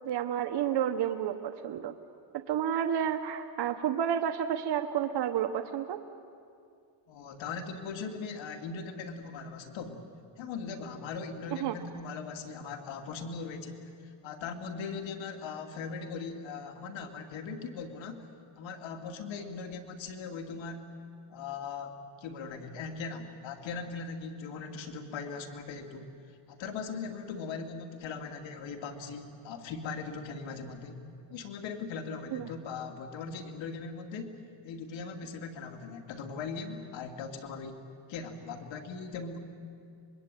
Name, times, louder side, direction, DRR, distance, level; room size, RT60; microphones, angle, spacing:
voice 1, 0.0-1.9 2.3-6.0 11.6-11.7 32.3-32.5, right 9 dB, 60° right, 6 dB, 1.2 m, -30 dB
voice 2, 7.1-10.0 10.4-18.3 18.6-20.9 21.3-31.0 31.3-34.4 34.6-37.8 38.1-39.4, left 5 dB, 85° left, 4 dB, 2.7 m, -40 dB
25.0 x 22.0 x 9.2 m, 2.4 s
cardioid pair, 110°, 45 cm